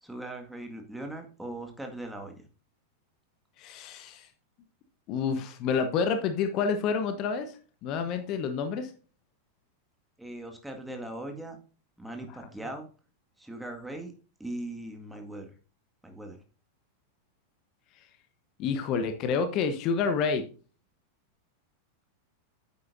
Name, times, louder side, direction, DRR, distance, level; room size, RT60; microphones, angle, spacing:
voice 1, 0.0-2.3 10.2-11.6 12.0-12.9 13.4-14.1 14.4-15.5 16.0-16.4, right 1 dB, 5° right, 3 dB, 1.9 m, -39 dB
voice 2, 3.6-4.3 5.1-8.9 18.6-20.4, left 5 dB, 40° left, 8 dB, 1.1 m, -29 dB
9.4 x 8.5 x 2.6 m, 0.36 s
figure-of-eight pair, 90°, 0 cm